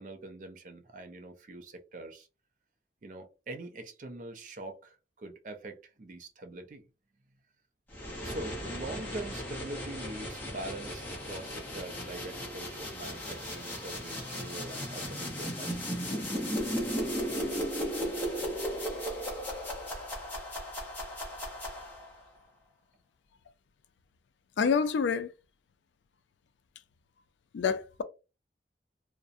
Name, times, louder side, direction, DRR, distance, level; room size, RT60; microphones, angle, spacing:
voice 1, 0.0-2.3 3.0-6.8 8.2-15.8, right 2 dB, 45° right, 0.4 m, -43 dB
sound 1, 7.9-22.2, equal, 10° left, 0.6 m, -36 dB
voice 2, 24.6-25.3 27.5-28.0, left 6 dB, 85° left, 0.3 m, -27 dB
2.6 x 2.0 x 2.4 m
head